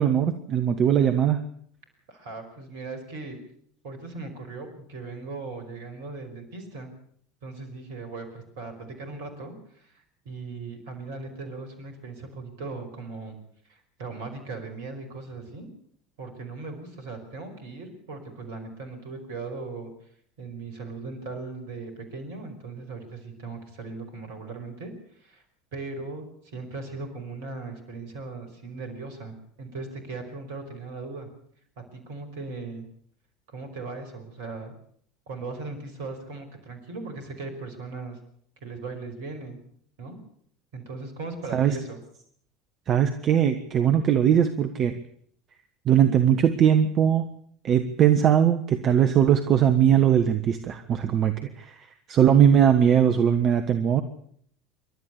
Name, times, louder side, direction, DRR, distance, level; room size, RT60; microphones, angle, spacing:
voice 1, 0.0-1.4 41.5-41.8 42.9-45.0 45.8-47.3 47.6-54.0, right 9 dB, 40° right, 9 dB, 1.3 m, -20 dB
voice 2, 2.1-3.4 3.8-6.9 7.4-13.4 13.7-15.7 16.2-19.9 20.4-25.4 25.7-31.3 31.9-32.9 33.5-34.7 35.3-38.2 38.6-39.6 40.0-40.2 40.7-42.0, right 3 dB, 65° right, 7 dB, 5.2 m, -38 dB
27.5 x 12.0 x 8.4 m, 0.64 s
figure-of-eight pair, 70°, 0 cm